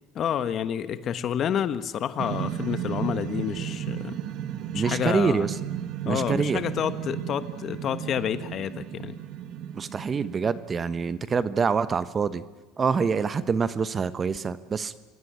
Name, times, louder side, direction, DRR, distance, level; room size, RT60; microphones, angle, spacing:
voice 1, 0.1-4.2 4.7-5.5 6.0-9.2, left 9 dB, 45° left, 12 dB, 1.4 m, -29 dB
sound 1, 2.2-10.7, right 10 dB, 55° right, 1.3 m, -34 dB
voice 2, 4.7-5.5 6.0-6.6 9.7-12.4 12.8-14.9, right 5 dB, 25° right, 14 dB, 1.0 m, -26 dB
27.0 x 17.5 x 9.5 m, 1.3 s
supercardioid pair, 120°, 0 cm